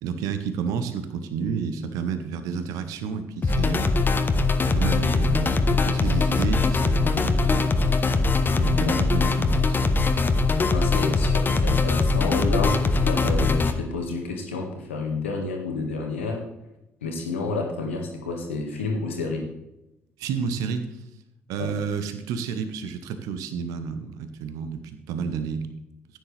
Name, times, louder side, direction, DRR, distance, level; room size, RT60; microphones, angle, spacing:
voice 1, 0.0-3.9 4.7-7.7 8.5-9.8 20.2-21.0 21.5-25.7, right 6 dB, 65° right, 9 dB, 0.9 m, -30 dB
sound 1, 3.4-13.7, left 3 dB, 30° left, 1.1 m, -21 dB
voice 2, 10.7-16.4 17.0-19.4 21.6-21.7, left 3 dB, 80° left, 2 dB, 1.7 m, -30 dB
15.0 x 9.4 x 3.4 m, 0.91 s
figure-of-eight pair, 45°, 6 cm